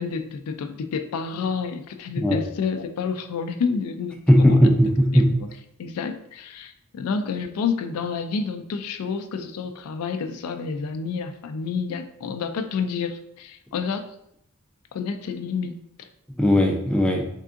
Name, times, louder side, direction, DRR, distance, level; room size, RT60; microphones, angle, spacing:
voice 1, 0.0-4.7 5.1-5.5 5.8-14.1 14.9-16.1, left 5 dB, 80° left, 8 dB, 0.3 m, -29 dB
voice 2, 4.3-5.5 16.3-17.3, equal, 5° left, 1 dB, 0.4 m, -18 dB
3.6 x 3.5 x 2.4 m, 0.74 s
head